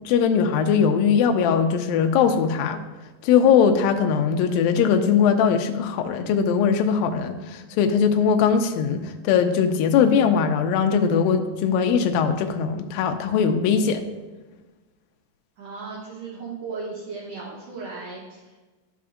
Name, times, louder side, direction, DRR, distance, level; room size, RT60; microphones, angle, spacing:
voice 1, 0.1-2.8 3.2-14.0, left 7 dB, 85° left, 6 dB, 2.1 m, -20 dB
voice 2, 15.6-18.6, right 4 dB, 75° right, -5 dB, 1.5 m, -36 dB
11.5 x 5.0 x 2.4 m, 1.2 s
omnidirectional pair, 4.5 m